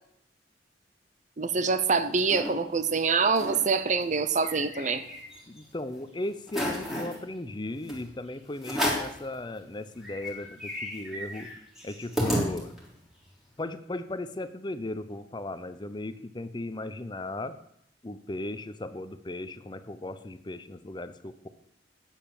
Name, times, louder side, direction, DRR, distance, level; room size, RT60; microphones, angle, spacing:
voice 1, 1.4-5.0, right 4 dB, 40° right, 12 dB, 0.7 m, -25 dB
sound 1, 1.7-2.5 3.0-3.1 3.3-3.6 4.0-5.6 6.0-6.1 6.5-7.2 7.9-8.0 8.6-9.2 9.7-9.8 10.0-13.0, equal, ahead, 3.6 m, -32 dB
voice 2, 5.5-11.5 11.8-12.7 13.6-17.6 18.0-21.5, left 1 dB, 25° left, 12 dB, 0.7 m, -36 dB
12.0 x 9.0 x 7.1 m, 0.74 s
head